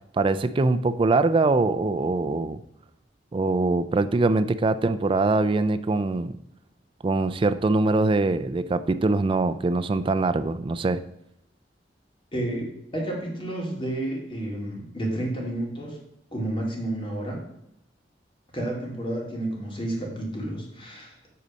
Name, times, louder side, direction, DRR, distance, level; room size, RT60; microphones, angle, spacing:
voice 1, 0.1-2.6 3.3-6.3 7.0-11.0, right 3 dB, 30° right, 11 dB, 0.4 m, -23 dB
voice 2, 12.3-16.0 16.3-17.4 18.5-21.2, right 1 dB, 30° left, -1 dB, 2.3 m, -31 dB
8.4 x 4.1 x 6.2 m, 0.80 s
head